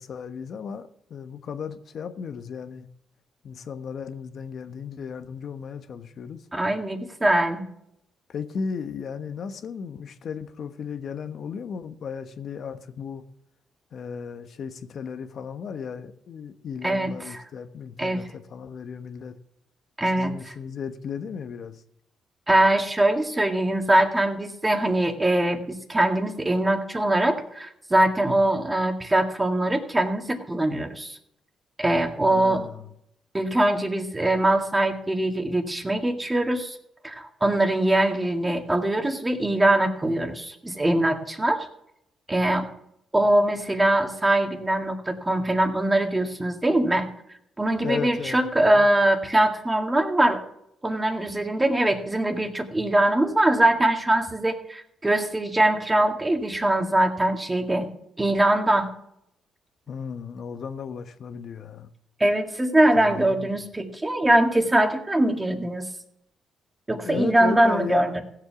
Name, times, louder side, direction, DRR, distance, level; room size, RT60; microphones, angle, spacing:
voice 1, 0.0-2.9 3.4-6.4 8.3-13.2 13.9-19.4 20.1-21.8 32.3-32.9 47.8-48.9 59.9-61.9 63.0-63.6 67.0-68.2, left 6 dB, 60° left, 1.1 m, -35 dB
voice 2, 6.5-7.7 16.8-17.4 18.0-18.2 20.0-20.5 22.5-31.2 31.8-32.6 33.3-36.8 37.0-41.7 42.3-42.7 43.1-47.1 47.6-50.4 50.8-57.9 58.2-58.9 62.2-65.9 66.9-68.2, right 1 dB, 15° right, 1.9 m, -22 dB
16.0 x 7.5 x 5.9 m
cardioid pair, 90°, 0 cm